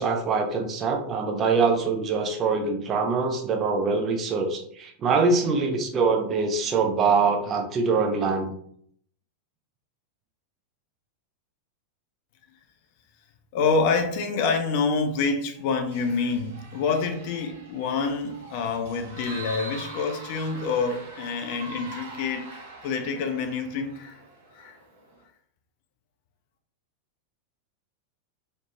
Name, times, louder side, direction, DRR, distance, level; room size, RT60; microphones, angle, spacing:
voice 1, 0.0-8.5, right 4 dB, 30° right, 0.5 m, -24 dB
voice 2, 13.5-24.2 24.5-24.8, left 4 dB, 45° left, 0.4 m, -27 dB
sound 1, 15.6-25.2, right 2 dB, 60° right, 0.7 m, -43 dB
3.1 x 2.0 x 2.9 m
figure-of-eight pair, 90°, 0 cm